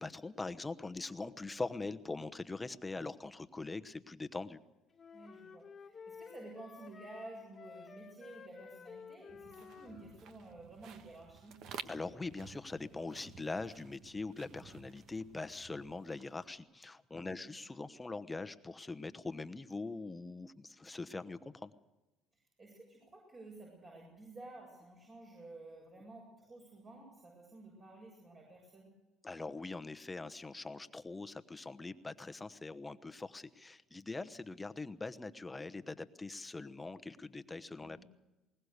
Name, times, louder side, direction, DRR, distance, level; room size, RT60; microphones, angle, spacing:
voice 1, 0.0-4.6 11.9-21.7 29.2-38.0, left 3 dB, 15° left, 12 dB, 1.0 m, -42 dB
sound 1, 4.9-10.1, left 5 dB, 35° left, 1.6 m, -53 dB
voice 2, 5.1-11.6 17.2-17.5 22.6-28.9 37.8-38.1, right 2 dB, 40° right, -2 dB, 7.7 m, -52 dB
sound 2, 9.3-16.6, right 7 dB, 70° right, 1.4 m, -53 dB
21.0 x 19.0 x 6.7 m, 1.1 s
supercardioid pair, 90°, 0 cm